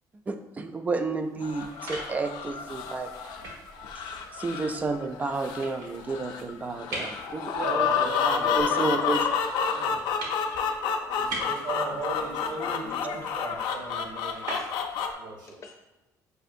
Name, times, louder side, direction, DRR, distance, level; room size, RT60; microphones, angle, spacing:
voice 1, 0.3-3.1 4.3-7.9 8.2-9.2, right 3 dB, 20° right, 7 dB, 0.3 m, -31 dB
sound 1, 1.2-15.1, right 1 dB, 90° right, 1.3 m, -43 dB
sound 2, 1.4-15.1, left 6 dB, 90° left, 0.4 m, -30 dB
voice 2, 7.5-9.0 9.7-9.9 11.1-14.5 15.1-15.6, right 3 dB, 75° right, -2 dB, 1.0 m, -37 dB
voice 3, 12.0-13.3 14.5-14.8 15.6-15.8, left 3 dB, 45° left, 2 dB, 0.7 m, -47 dB
6.4 x 2.5 x 2.6 m, 1.1 s
cardioid pair, 130°, 7 cm